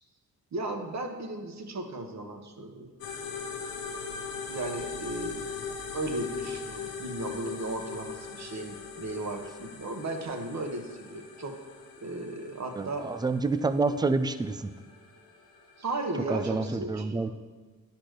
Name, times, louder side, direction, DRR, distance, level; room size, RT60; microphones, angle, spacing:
voice 1, 0.5-2.9 4.5-5.4 5.9-11.6 12.0-13.1 15.8-17.3, right 2 dB, 50° right, 4 dB, 1.2 m, -35 dB
sound 1, 3.0-16.7, left 5 dB, 80° left, 1.1 m, -40 dB
voice 2, 12.8-14.7 16.3-17.3, right 3 dB, 10° right, 12 dB, 0.4 m, -28 dB
10.0 x 4.3 x 6.4 m, 1.4 s
cardioid pair, 85°, 34 cm